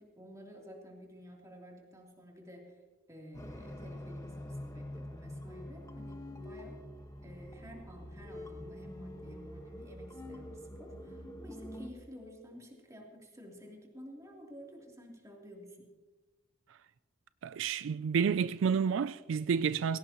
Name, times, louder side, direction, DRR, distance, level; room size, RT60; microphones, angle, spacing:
voice 1, 0.0-2.8 3.1-6.9 7.2-15.9, equal, 15° right, 3.1 m, -52 dB
sound 1, 3.3-11.9, left 1 dB, 15° left, 1.3 m, -45 dB
voice 2, 17.4-20.0, right 6 dB, 70° right, 0.4 m, -30 dB
20.0 x 17.0 x 3.0 m
head